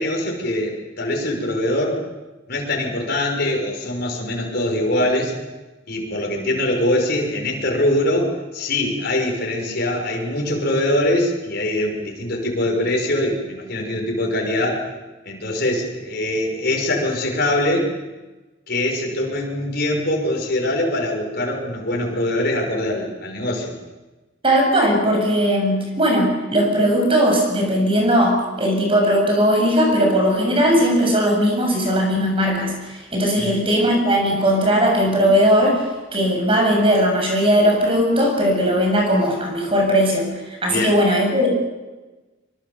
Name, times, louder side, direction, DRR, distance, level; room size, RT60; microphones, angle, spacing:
voice 1, 0.0-2.0 2.5-5.3 5.9-14.8 15.3-17.9 18.7-23.8 33.4-33.6 40.7-41.0, left 1 dB, 55° left, 0 dB, 5.8 m, -23 dB
voice 2, 24.4-35.8 36.1-41.5, equal, 30° right, 1 dB, 7.4 m, -18 dB
24.0 x 24.0 x 7.1 m, 1.2 s
head